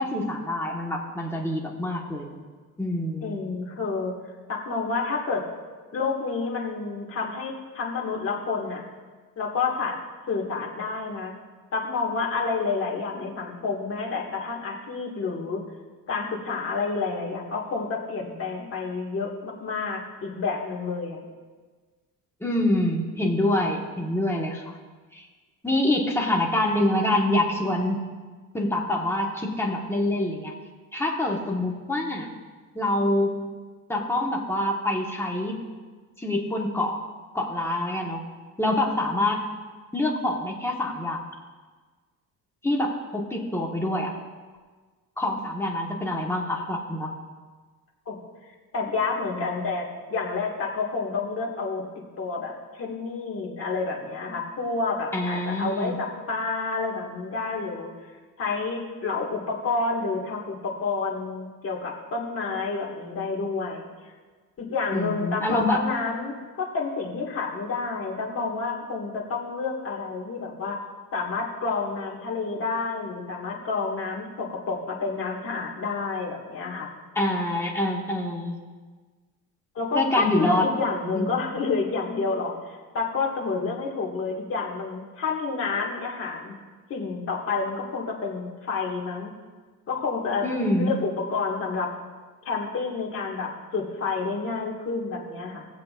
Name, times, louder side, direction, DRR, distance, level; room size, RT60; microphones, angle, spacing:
voice 1, 0.0-2.4 2.8-3.3 22.4-24.8 25.1-25.3 25.6-28.0 28.5-30.5 30.9-32.3 32.7-33.3 33.9-35.5 36.2-37.0 37.3-38.2 38.6-39.4 39.9-41.2 42.6-44.1 45.2-47.1 55.1-56.0 64.9-65.9 77.1-78.6 79.9-80.6 81.1-81.4 90.4-90.9, left 1 dB, 10° left, -2 dB, 1.4 m, -26 dB
voice 2, 3.2-4.1 4.5-5.5 5.9-8.8 9.4-10.0 10.3-11.3 11.7-15.6 16.1-21.2 48.1-48.2 48.7-51.8 52.2-58.1 58.4-63.9 64.6-70.8 71.1-76.9 79.8-86.6 86.9-89.3 89.9-90.5 90.8-91.9 92.5-95.7, left 4 dB, 40° left, -2 dB, 1.9 m, -29 dB
18.5 x 7.5 x 2.5 m, 1.4 s
cardioid pair, 140°, 33 cm